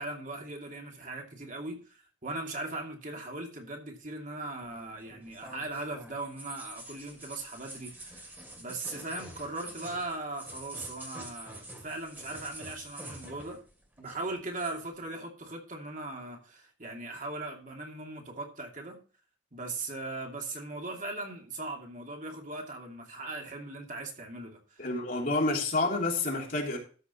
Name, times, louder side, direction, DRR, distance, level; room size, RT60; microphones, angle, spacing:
voice 1, 0.0-13.6 14.0-19.0 19.5-24.8, right 2 dB, 45° right, 2.6 m, -39 dB
sound 1, 4.6-13.7 14.0-14.8, right 1 dB, 10° right, 2.3 m, -46 dB
voice 2, 24.8-26.8, left 2 dB, 50° left, 3.1 m, -29 dB
13.5 x 5.3 x 5.7 m
head